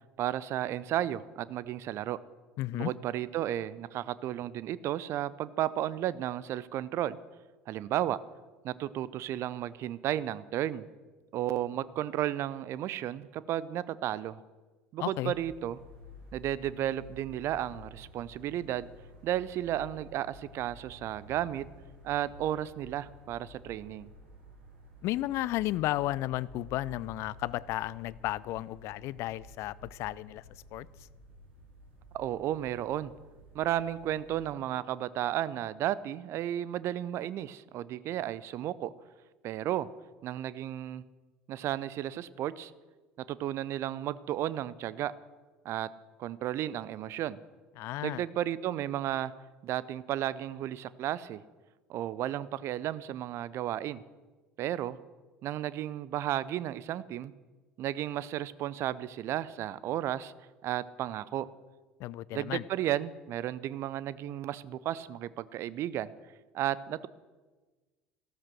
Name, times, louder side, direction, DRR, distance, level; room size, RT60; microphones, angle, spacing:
voice 1, 0.2-2.2 2.7-7.2 7.7-8.2 8.6-10.9 11.3-14.4 14.9-15.8 16.3-18.9 19.2-21.7 22.0-24.1 32.1-33.1 33.5-38.9 39.4-39.9 40.2-41.0 41.5-42.7 43.3-45.1 45.6-45.9 46.2-47.4 48.0-49.3 49.6-51.4 51.9-54.0 54.6-55.0 55.4-57.3 57.8-60.3 60.6-61.5 62.3-66.1 66.5-67.1, right 12 dB, 45° right, 18 dB, 0.6 m, -33 dB
voice 2, 2.6-2.9 15.0-15.3 25.0-30.4 30.7-30.9 47.8-48.2 62.0-62.6, left 16 dB, 50° left, 21 dB, 0.4 m, -33 dB
sound 1, 15.3-34.3, equal, 70° right, 3.9 m, -52 dB
14.5 x 13.5 x 6.3 m, 1.3 s
figure-of-eight pair, 65°, 6 cm